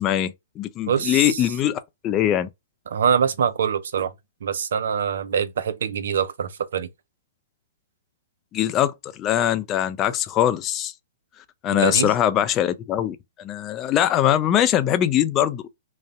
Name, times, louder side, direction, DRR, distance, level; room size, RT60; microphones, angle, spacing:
voice 1, 0.0-2.5 8.5-10.9 11.6-15.8, left 11 dB, 30° left, 0.3 m, -22 dB
voice 2, 0.9-1.4 2.9-4.1 4.4-6.9 11.7-12.1, right 7 dB, 70° right, 0.4 m, -24 dB
2.5 x 2.0 x 2.4 m
hypercardioid pair, 120°, 0 cm